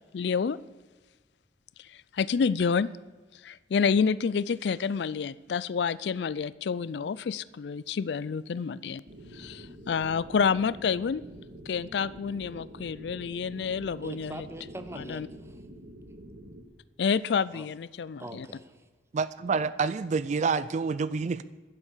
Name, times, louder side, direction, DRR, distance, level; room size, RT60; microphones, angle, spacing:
voice 1, 0.1-0.6 1.8-2.9 3.4-9.0 9.3-11.2 11.7-14.5 15.0-15.3 17.0-18.5, left 6 dB, 65° left, 20 dB, 0.4 m, -29 dB
sound 1, 9.1-16.6, equal, 55° right, 1.8 m, -47 dB
voice 2, 14.0-15.6 17.5-17.7 18.2-18.8, right 1 dB, 15° right, 9 dB, 1.0 m, -42 dB
voice 3, 19.1-21.4, right 5 dB, 40° right, 16 dB, 0.3 m, -28 dB
11.0 x 10.0 x 7.3 m, 1.3 s
head